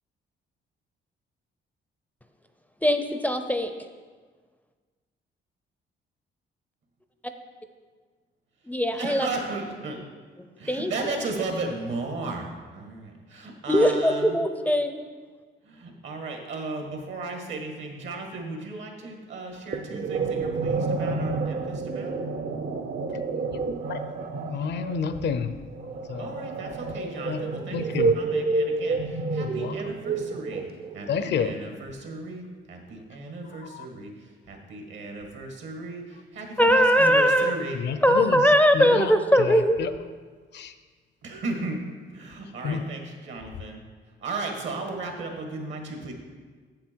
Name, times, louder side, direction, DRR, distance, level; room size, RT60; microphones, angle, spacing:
voice 1, 2.8-3.7 8.7-9.3 10.7-11.1 13.7-15.0 36.6-37.5 38.0-39.8, equal, 5° left, 7 dB, 0.5 m, -20 dB
voice 2, 9.0-10.0 10.6-14.3 15.6-22.2 26.2-30.6 30.9-32.4 32.7-34.1 34.5-37.8 41.2-41.8 42.1-43.8 44.2-46.1, right 3 dB, 70° right, 3 dB, 1.7 m, -35 dB
sound 1, 19.7-31.1, right 4 dB, 50° right, 0.6 m, -29 dB
voice 3, 23.9-25.5 26.1-26.3 27.2-27.4 27.7-28.2 29.4-29.8 31.1-31.6 33.4-33.9 37.7-39.9 40.5-40.7 42.6-42.8, left 6 dB, 60° left, 11 dB, 0.6 m, -30 dB
7.7 x 6.9 x 4.5 m, 1.5 s
cardioid pair, 90°, 20 cm